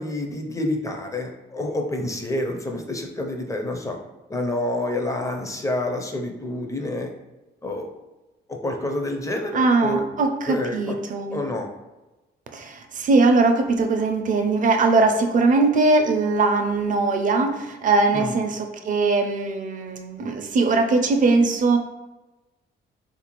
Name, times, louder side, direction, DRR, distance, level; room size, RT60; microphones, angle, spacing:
voice 1, 0.0-4.0 4.3-7.1 7.6-7.9 8.5-10.1 10.5-11.0 11.3-11.7 18.1-18.3, left 1 dB, 15° left, 2 dB, 0.5 m, -28 dB
voice 2, 9.5-11.4 12.5-21.8, right 3 dB, 40° right, 5 dB, 0.5 m, -20 dB
3.5 x 2.5 x 3.0 m, 1.1 s
cardioid pair, 90°, 20 cm